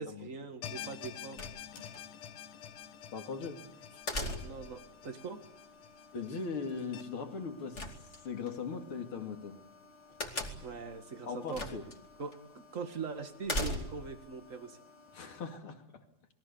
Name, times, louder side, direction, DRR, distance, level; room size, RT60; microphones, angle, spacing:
voice 1, 0.0-1.4 4.4-5.4 10.5-11.6 12.2-14.8, right 5 dB, 80° right, 7 dB, 0.7 m, -42 dB
sound 1, 0.6-7.0, left 10 dB, 65° left, 2.5 m, -48 dB
sound 2, 1.4-2.0 4.1-4.8 7.7-8.5 10.2-10.8 11.5-12.0 12.3-12.4 13.4-14.2, left 1 dB, 20° left, 2.1 m, -37 dB
sound 3, 1.7-15.6, left 3 dB, 80° left, 8.0 m, -58 dB
voice 2, 3.1-3.6 3.9-4.0 6.1-7.8 8.2-9.6 11.2-11.8 15.1-16.0, left 5 dB, 40° left, 6 dB, 2.7 m, -39 dB
28.0 x 21.5 x 7.0 m, 0.83 s
omnidirectional pair, 4.6 m